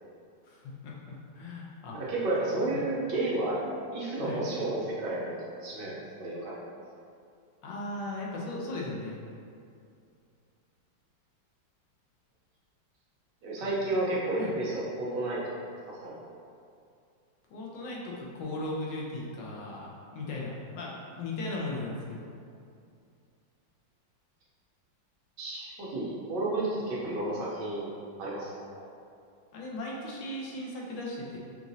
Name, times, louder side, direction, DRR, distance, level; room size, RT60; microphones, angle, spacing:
voice 1, 0.4-2.0 2.7-2.9 4.2-4.4 7.6-9.2 13.6-13.9 14.4-14.5 17.5-19.9 20.1-22.3 29.5-31.4, left 2 dB, 75° left, -3 dB, 1.3 m, -37 dB
voice 2, 1.9-3.6 3.9-6.5 13.4-15.6 15.9-16.1 25.4-27.9 28.2-28.8, right 2 dB, 70° right, -6 dB, 1.3 m, -32 dB
5.9 x 2.5 x 2.6 m, 2.4 s
omnidirectional pair, 2.1 m